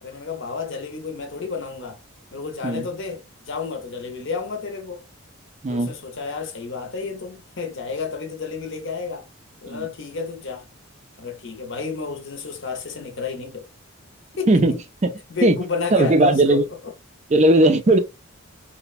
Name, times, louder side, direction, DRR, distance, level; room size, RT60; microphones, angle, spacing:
voice 1, 0.0-2.0 2.3-5.0 5.7-9.3 9.6-10.7 11.2-13.7 14.4-14.8 15.3-16.9, left 5 dB, 55° left, 0.7 m, -31 dB
voice 2, 14.5-15.1 15.4-15.6 15.9-16.7 17.3-18.0, right 2 dB, 30° right, 0.4 m, -17 dB
3.0 x 2.1 x 2.4 m
head